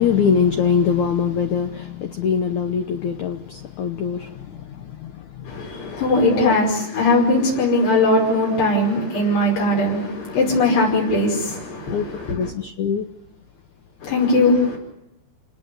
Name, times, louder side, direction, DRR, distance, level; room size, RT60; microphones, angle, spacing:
voice 1, 0.0-5.5 5.8-6.0 6.3-6.5 11.9-13.1, left 7 dB, 85° left, 1.6 m, -23 dB
voice 2, 5.4-12.5 14.0-14.8, left 2 dB, 65° left, 7.5 m, -20 dB
29.0 x 19.5 x 8.1 m
omnidirectional pair, 5.1 m